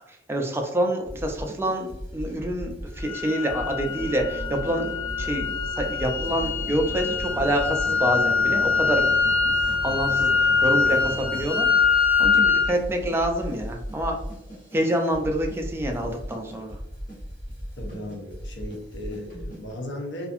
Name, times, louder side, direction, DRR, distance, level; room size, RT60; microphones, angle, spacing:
voice 1, 0.3-4.9 5.2-5.5 5.8-9.0 9.6-14.2 14.7-16.8, right 1 dB, 15° right, 2 dB, 0.3 m, -27 dB
sound 1, 1.0-19.7, equal, 45° left, 1.1 m, -38 dB
sound 2, 3.0-12.7, left 5 dB, 25° left, 0.8 m, -23 dB
sound 3, 3.9-11.5, right 2 dB, 70° right, 0.6 m, -38 dB
voice 2, 17.8-20.3, left 1 dB, 75° left, 1 dB, 0.6 m, -36 dB
2.5 x 2.4 x 2.5 m, 0.85 s
head